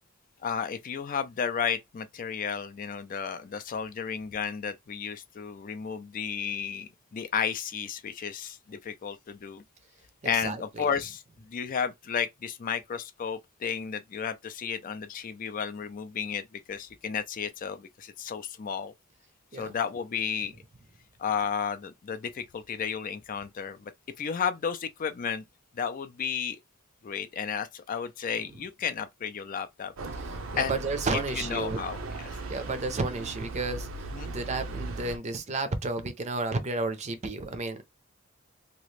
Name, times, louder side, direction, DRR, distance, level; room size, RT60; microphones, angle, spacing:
voice 1, 0.4-9.6 10.2-11.2 11.5-18.9 19.5-20.5 21.2-23.9 24.2-25.4 25.7-26.6 27.0-29.9 30.6-30.8 31.3-32.4 34.1-34.3, left 7 dB, 40° left, 0.4 m, -33 dB
voice 2, 10.4-10.9 19.5-19.7 30.5-31.8 32.5-33.9 34.2-37.8, right 3 dB, 35° right, 0.5 m, -32 dB
sound 1, 30.0-35.2, right 3 dB, 75° right, 0.6 m, -38 dB
2.9 x 2.4 x 3.2 m
head